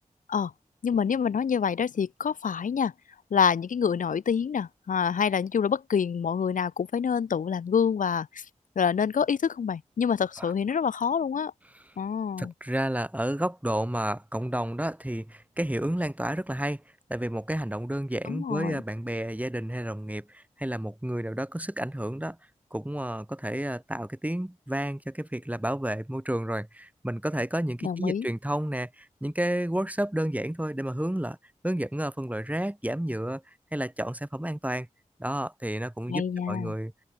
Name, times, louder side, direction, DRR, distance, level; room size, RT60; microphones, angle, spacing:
voice 1, 0.8-2.9 3.3-8.4 8.8-11.5 12.0-12.5 18.3-18.8 27.8-28.3 36.1-36.7, left 7 dB, 90° left, 0.9 m, -27 dB
voice 2, 12.4-16.8 17.1-22.4 22.7-31.4 31.6-33.4 33.7-34.9 35.2-36.9, right 1 dB, 10° right, 4.1 m, -31 dB
open air
cardioid pair, 40°, 13 cm